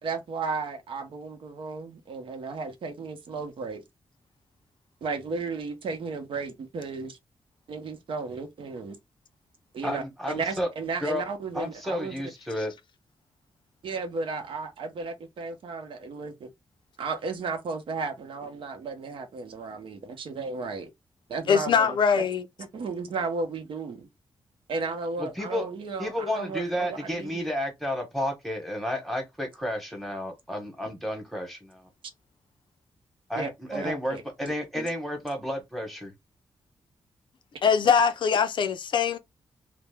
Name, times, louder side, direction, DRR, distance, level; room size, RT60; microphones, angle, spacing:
voice 1, 0.0-3.8 5.0-7.2 7.7-9.0 9.7-12.1 13.8-16.5 17.0-20.9 21.3-22.2 22.6-24.1 24.7-27.4 33.4-34.9, right 4 dB, 65° right, 0.8 m, -34 dB
voice 2, 9.8-10.7 11.0-11.2 11.5-12.7 25.2-25.6 26.0-31.9 33.3-36.1, equal, ahead, 1.0 m, -31 dB
voice 3, 21.5-22.4 37.6-39.2, left 6 dB, 60° left, 0.4 m, -22 dB
3.3 x 2.0 x 3.3 m
wide cardioid pair, 155°, 9 cm